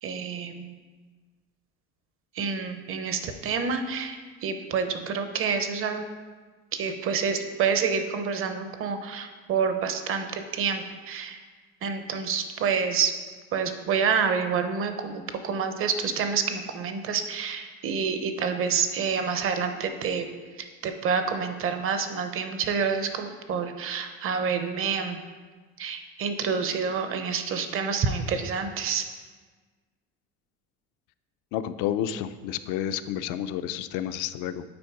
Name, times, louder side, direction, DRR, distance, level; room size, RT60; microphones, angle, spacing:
voice 1, 0.0-0.8 2.3-6.1 6.7-11.4 11.8-13.1 13.5-20.3 20.6-25.2 25.8-29.0, right 6 dB, 45° right, 8 dB, 0.7 m, -28 dB
voice 2, 31.5-34.6, left 10 dB, 85° left, 11 dB, 0.5 m, -30 dB
8.6 x 4.5 x 4.8 m, 1.4 s
cardioid pair, 145°, 30 cm